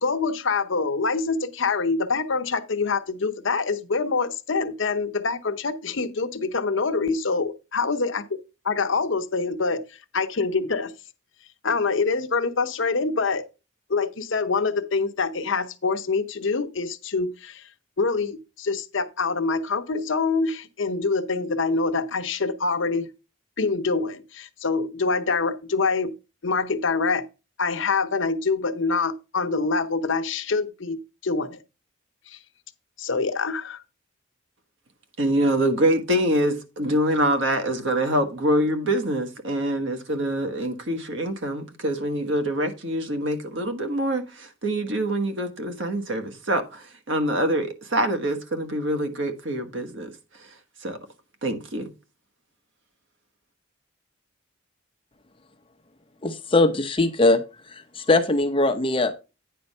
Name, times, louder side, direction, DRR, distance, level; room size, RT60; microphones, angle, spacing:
voice 1, 0.0-8.4 8.6-10.9 11.6-13.5 13.9-17.7 18.0-23.1 23.6-26.1 26.4-27.2 27.6-31.6 32.3-32.4 33.0-33.8, left 4 dB, 65° left, 0.8 m, -25 dB
voice 2, 35.2-50.1 50.8-51.0 51.4-51.9, right 1 dB, 65° right, 1.3 m, -25 dB
voice 3, 56.2-57.4 57.7-59.2, left 2 dB, 25° left, 0.8 m, -21 dB
9.3 x 4.3 x 5.4 m
head